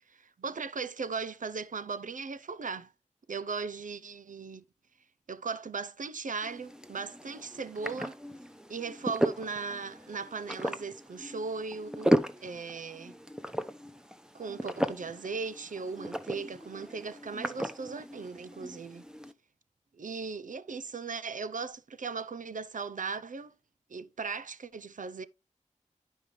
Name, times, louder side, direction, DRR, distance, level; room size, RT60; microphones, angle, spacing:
voice 1, 0.2-2.9 3.3-4.6 5.3-8.2 8.7-12.1 12.4-13.1 14.3-19.0 20.0-23.5 23.9-25.2, right 4 dB, 85° right, 0.6 m, -38 dB
sound 1, 6.4-19.3, right 1 dB, 5° right, 0.8 m, -35 dB
11.0 x 5.4 x 3.2 m
wide cardioid pair, 60°, 13 cm